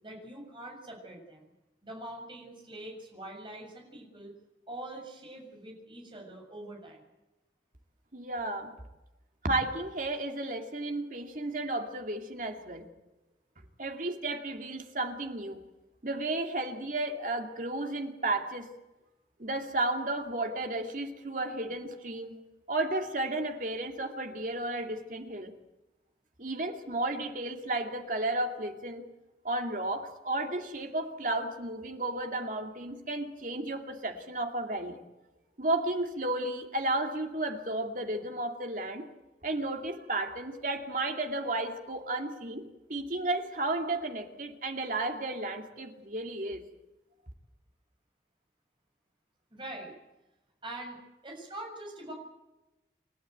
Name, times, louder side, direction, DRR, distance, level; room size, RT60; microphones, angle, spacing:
voice 1, 0.0-1.5 1.8-4.3 4.7-7.0 49.5-49.9 50.6-52.1, right 1 dB, 30° right, 1 dB, 6.9 m, -44 dB
voice 2, 8.1-8.7 9.4-12.9 13.8-15.6 16.0-18.7 19.4-22.3 22.7-25.5 26.4-29.0 29.4-35.0 35.6-39.0 39.4-42.6 42.9-46.6, right 2 dB, 50° right, 4 dB, 2.5 m, -33 dB
29.0 x 13.0 x 9.3 m, 1.0 s
head